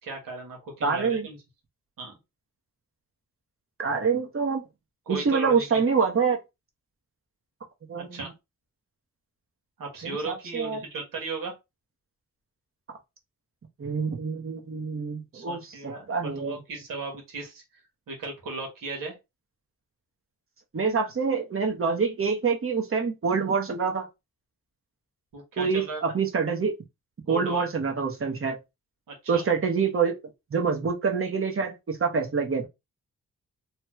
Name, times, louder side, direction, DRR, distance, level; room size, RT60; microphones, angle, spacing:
voice 1, 0.0-1.4 2.0-2.2 5.1-5.8 8.0-8.3 9.8-11.5 15.3-17.6 18.1-19.1 25.3-26.0 27.3-27.7 29.1-29.4, right 3 dB, 85° right, 1.4 m, -36 dB
voice 2, 0.8-1.3 3.8-4.6 5.1-6.4 7.9-8.2 10.0-10.8 13.8-16.6 20.7-24.0 25.6-26.7 27.3-28.6 29.3-30.2 30.5-32.7, right 5 dB, 40° right, 1.0 m, -26 dB
3.1 x 2.3 x 3.0 m
cardioid pair, 65°, 32 cm